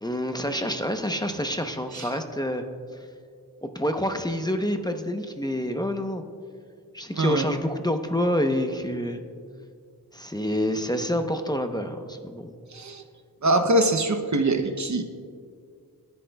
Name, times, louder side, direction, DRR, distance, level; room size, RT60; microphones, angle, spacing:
voice 1, 0.0-2.6 3.6-6.2 6.9-9.2 10.1-12.5, equal, 10° left, 5 dB, 0.9 m, -27 dB
voice 2, 7.2-7.5 12.7-13.0 13.4-15.0, right 1 dB, 50° right, 7 dB, 0.8 m, -23 dB
21.5 x 10.5 x 2.3 m, 2.2 s
cardioid pair, 55°, 38 cm